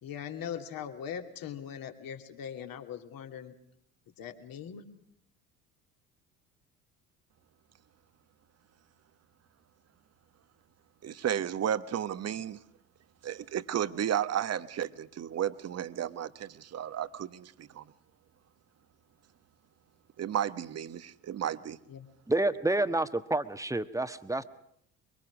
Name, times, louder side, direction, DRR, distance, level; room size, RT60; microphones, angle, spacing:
voice 1, 0.0-3.6 4.2-4.9 21.9-22.1, left 8 dB, 50° left, 6 dB, 2.7 m, -40 dB
voice 2, 11.0-12.6 13.2-17.8 20.2-21.8, right 10 dB, 35° right, 15 dB, 1.2 m, -33 dB
voice 3, 22.3-24.4, right 2 dB, 5° right, 12 dB, 1.4 m, -29 dB
23.5 x 23.5 x 6.2 m, 0.72 s
figure-of-eight pair, 60°, 43 cm